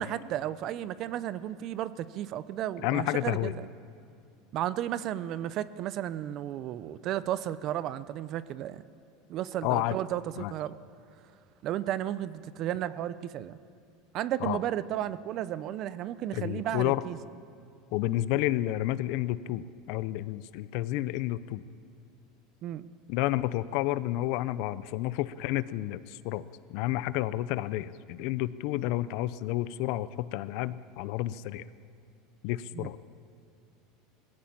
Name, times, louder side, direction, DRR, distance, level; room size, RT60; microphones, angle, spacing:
voice 1, 0.0-3.7 4.5-8.8 9.3-10.8 11.6-13.6 14.1-17.2 22.6-22.8 32.7-32.9, right 12 dB, 45° right, 16 dB, 0.7 m, -33 dB
voice 2, 2.8-3.5 9.6-10.0 10.4-10.5 14.4-14.6 16.3-17.0 17.9-21.6 23.1-26.4 26.7-31.6 32.4-33.0, left 15 dB, 60° left, 16 dB, 0.7 m, -30 dB
20.0 x 16.0 x 8.8 m, 2.5 s
supercardioid pair, 140°, 0 cm